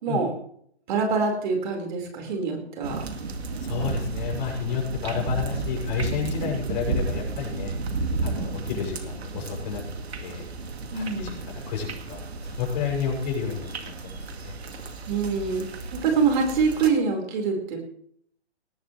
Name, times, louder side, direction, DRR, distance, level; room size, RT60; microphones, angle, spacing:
voice 1, 0.9-3.0 10.9-11.4 15.1-15.6 15.9-17.8, right 5 dB, 45° right, 2 dB, 4.8 m, -25 dB
sound 1, 2.8-16.9, right 3 dB, 65° right, 2.1 m, -33 dB
voice 2, 3.6-7.7 8.2-10.5 10.9-13.7 14.0-14.5, left 6 dB, 40° left, -1 dB, 7.0 m, -31 dB
19.0 x 16.0 x 3.3 m, 0.65 s
figure-of-eight pair, 135°, 34 cm